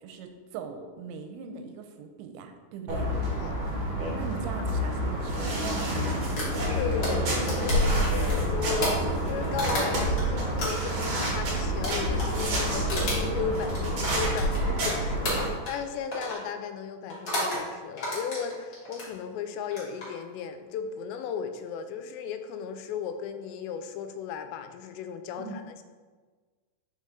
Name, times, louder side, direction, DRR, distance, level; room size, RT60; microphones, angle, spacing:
voice 1, 0.0-3.1 4.1-6.4 25.4-25.6, right 5 dB, 90° right, 6 dB, 2.9 m, -40 dB
sound 1, 2.9-15.5, equal, 70° right, 1.5 m, -28 dB
sound 2, 6.4-10.2 10.6-14.9 15.2-15.8 16.1-16.4 17.1-17.6 18.0-19.1 19.6-20.1, equal, 65° left, 0.9 m, -32 dB
voice 2, 6.7-25.8, left 7 dB, 90° left, 8 dB, 2.8 m, -36 dB
5.8 x 5.3 x 3.7 m, 1.4 s
omnidirectional pair, 4.9 m